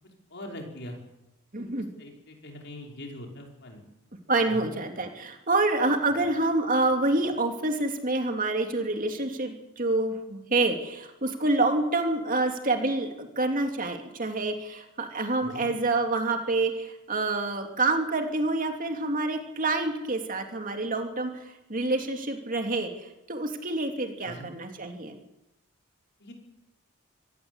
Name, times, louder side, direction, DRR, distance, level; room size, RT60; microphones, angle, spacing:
voice 1, 0.3-1.0 1.6-1.7 2.0-3.8 4.5-4.6 6.2-6.3 15.4-15.7 24.2-24.5 26.2-26.3, equal, 55° left, 1 dB, 5.6 m, -42 dB
voice 2, 1.5-1.9 4.3-21.3 21.7-25.2, right 2 dB, 40° right, 4 dB, 2.8 m, -27 dB
25.5 x 17.0 x 8.1 m, 0.94 s
head